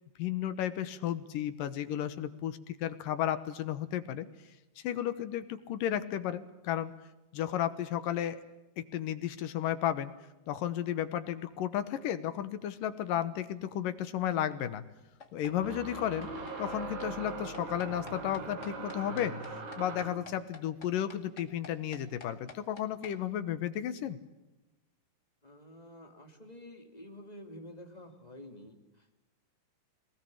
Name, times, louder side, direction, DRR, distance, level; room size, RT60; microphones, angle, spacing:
voice 1, 0.2-4.3 4.8-6.9 7.3-8.4 8.8-10.1 10.5-14.8 15.3-16.3 16.6-24.2, left 11 dB, 70° left, 12 dB, 2.5 m, -33 dB
sound 1, 13.5-13.6 15.4-20.3, right 3 dB, 65° right, 5.4 m, -41 dB
sound 2, 15.2-23.1, left 5 dB, 35° left, 2.0 m, -50 dB
voice 2, 25.4-29.2, left 1 dB, 15° left, 4 dB, 2.0 m, -50 dB
23.0 x 20.0 x 8.7 m, 1.0 s
omnidirectional pair, 4.5 m